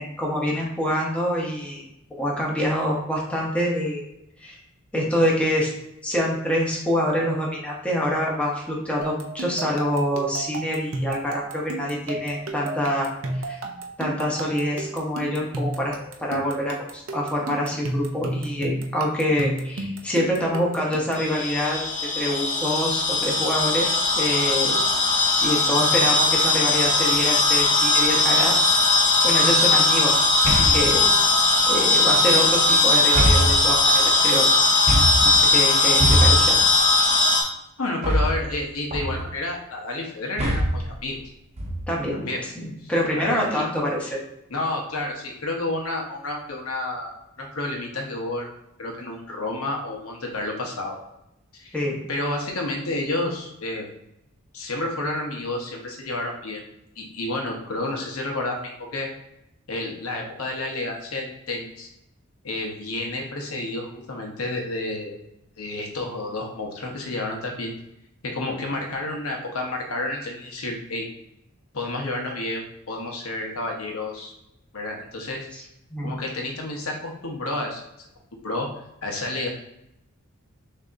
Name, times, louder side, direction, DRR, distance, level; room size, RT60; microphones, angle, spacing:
voice 1, 0.0-1.8 2.2-4.0 4.4-4.6 4.9-5.7 6.0-13.1 13.4-13.6 14.0-21.8 22.1-24.8 25.2-28.6 29.2-30.2 30.6-31.1 31.7-34.5 35.2-36.6 41.9-44.2 51.7-52.0 75.5-75.6 75.9-76.1, equal, 5° left, -4 dB, 1.0 m, -26 dB
sound 1, 9.0-21.3, right 2 dB, 70° right, 0.6 m, -33 dB
sound 2, 21.2-37.4, left 3 dB, 35° left, 1.0 m, -19 dB
sound 3, 29.2-29.5 30.4-31.0 32.1-32.6 33.1-34.1 34.9-35.4 36.0-36.6 38.0-38.6 38.9-39.4 40.4-40.9 41.6-42.1, right 1 dB, 30° right, 0.8 m, -23 dB
voice 2, 37.8-41.2 42.1-42.4 42.8-43.6 44.0-44.1 44.5-48.5 48.8-51.0 51.6-51.7 52.1-53.8 54.5-56.6 57.0-59.1 59.7-61.9 62.4-65.2 65.6-67.7 68.2-71.1 71.7-74.3 74.7-75.5 76.0-77.8 78.4-78.7 79.0-79.5, left 2 dB, 85° left, 1 dB, 1.0 m, -30 dB
6.4 x 2.8 x 2.5 m, 0.83 s
head